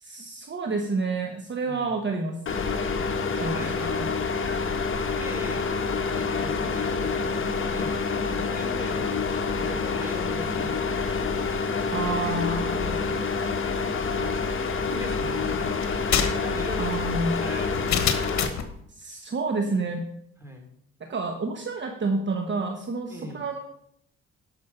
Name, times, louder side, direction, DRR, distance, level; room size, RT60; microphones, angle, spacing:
voice 1, 0.0-2.4 3.4-3.7 11.9-13.0 16.8-17.4 18.9-20.1 21.0-23.6, right 3 dB, 40° right, 4 dB, 1.1 m, -29 dB
sound 1, 2.5-18.5, left 4 dB, 40° left, 1.3 m, -27 dB
voice 2, 2.9-4.0 5.1-5.7 6.0-8.0 8.3-11.3 14.5-16.9 17.4-18.0 20.4-20.7 23.1-23.4, left 1 dB, 10° right, 3 dB, 2.9 m, -40 dB
sound 2, 15.8-18.7, left 8 dB, 65° left, 1.3 m, -27 dB
10.5 x 6.3 x 5.6 m, 0.73 s
cardioid pair, 90°, 30 cm